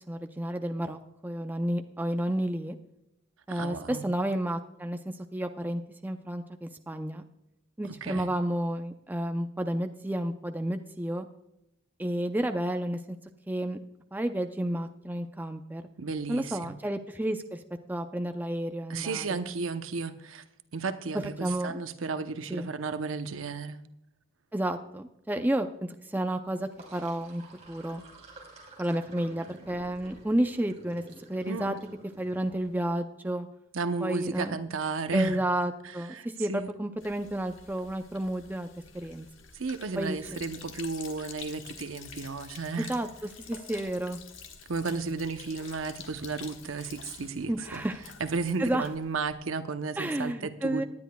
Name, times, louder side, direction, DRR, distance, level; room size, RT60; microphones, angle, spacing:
voice 1, 0.1-2.8 3.5-7.2 7.8-11.3 12.0-13.2 13.5-13.8 14.1-15.8 16.3-17.6 17.9-19.4 21.4-21.7 22.5-22.7 24.5-28.0 28.8-31.0 31.3-31.8 32.2-33.5 34.0-34.5 35.1-38.7 38.9-39.3 40.0-40.2 42.9-43.1 43.5-44.2 47.5-48.0 48.6-48.9 50.0-50.8, right 1 dB, 10° right, 6 dB, 0.5 m, -31 dB
voice 2, 3.5-4.1 8.0-8.3 16.0-16.7 18.9-20.4 20.7-23.8 31.5-31.8 33.7-35.4 35.8-36.7 39.5-42.9 44.7-47.8 48.2-50.8, right 4 dB, 75° right, 10 dB, 0.8 m, -33 dB
Sink (filling or washing), 26.6-32.8, right 2 dB, 35° right, 3.1 m, -51 dB
Sink (filling or washing) 2, 37.0-49.3, left 6 dB, 70° left, 1.4 m, -48 dB
19.0 x 10.5 x 2.3 m, 0.86 s
head